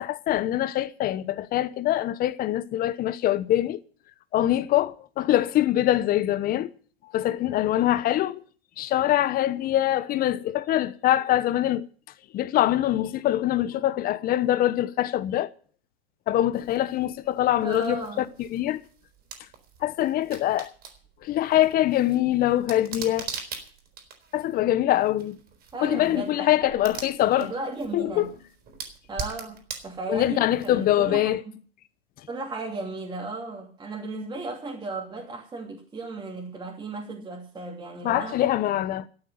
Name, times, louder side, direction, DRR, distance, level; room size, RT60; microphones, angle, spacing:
voice 1, 0.0-3.8 4.3-6.7 7.1-8.4 8.8-11.9 12.3-15.5 16.3-18.8 19.8-20.7 21.2-23.3 24.3-25.4 25.8-27.5 27.9-28.3 30.1-31.4 38.0-39.1, left 13 dB, 30° left, 1.0 m, -24 dB
sound 1, 16.5-31.1, right 6 dB, 30° right, 4.1 m, -43 dB
voice 2, 17.6-18.3 25.7-26.5 27.4-28.3 29.1-31.4 32.3-38.5, right 3 dB, 15° right, 2.9 m, -35 dB
13.5 x 8.5 x 9.3 m
hypercardioid pair, 115°, 32 cm